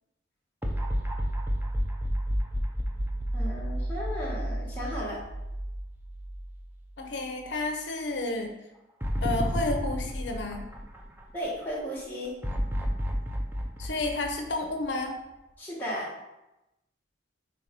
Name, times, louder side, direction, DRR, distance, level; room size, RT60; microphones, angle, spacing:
sound 1, 0.6-7.0 7.3-7.4 9.0-11.5 12.4-15.2, equal, 10° right, 0.6 m, -31 dB
voice 1, 3.3-5.2 11.3-12.3 15.6-16.1, equal, 10° left, -6 dB, 1.7 m, -35 dB
voice 2, 7.0-8.5 9.2-10.6 13.8-15.2, left 2 dB, 70° left, 3 dB, 0.8 m, -31 dB
4.5 x 4.1 x 5.2 m, 0.93 s
head